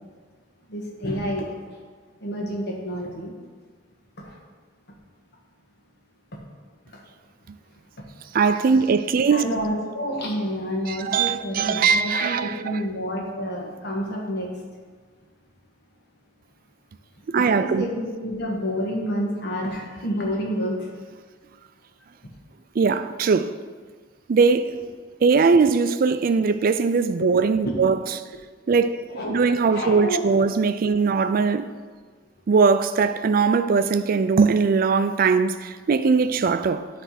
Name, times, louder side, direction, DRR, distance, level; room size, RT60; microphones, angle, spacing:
voice 1, 0.7-1.6 2.2-3.3 4.2-4.3 6.3-6.4 6.8-7.0 9.3-14.5 17.3-20.9 27.7-27.8 29.1-29.4 29.7-30.2, equal, 65° left, 1.4 m, -29 dB
voice 2, 8.3-9.4 10.9-12.8 17.3-17.9 22.8-23.6 24.3-24.8 25.2-28.0 28.7-31.7 32.5-36.9, right 5 dB, 50° right, 0.4 m, -20 dB
10.0 x 3.4 x 5.8 m
head